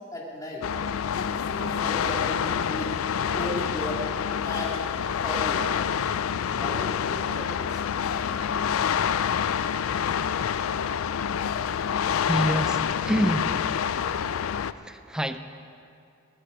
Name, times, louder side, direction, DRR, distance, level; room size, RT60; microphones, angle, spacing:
voice 1, 0.1-0.6 1.1-3.0 3.3-4.0 4.4-4.8 5.2-5.6 6.5-7.8, left 1 dB, 20° left, -4 dB, 2.2 m, -35 dB
sound 1, 0.6-14.7, left 8 dB, 85° left, 0.4 m, -27 dB
voice 2, 12.1-13.6 14.7-15.4, equal, 5° right, 9 dB, 0.5 m, -27 dB
19.0 x 12.5 x 4.9 m, 2.5 s
head